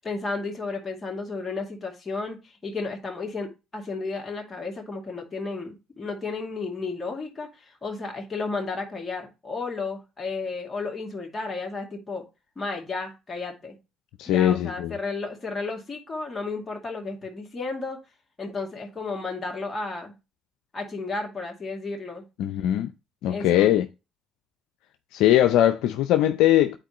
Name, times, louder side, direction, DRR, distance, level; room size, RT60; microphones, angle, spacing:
voice 1, 0.0-12.2 12.6-13.8 14.3-18.0 18.4-20.1 20.7-22.2 23.3-23.7, left 3 dB, 30° left, 2.1 m, -33 dB
voice 2, 14.2-14.9 22.4-22.9 23.2-23.9 25.1-26.8, left 12 dB, 75° left, 0.5 m, -20 dB
9.0 x 4.4 x 3.0 m
supercardioid pair, 70°, 0 cm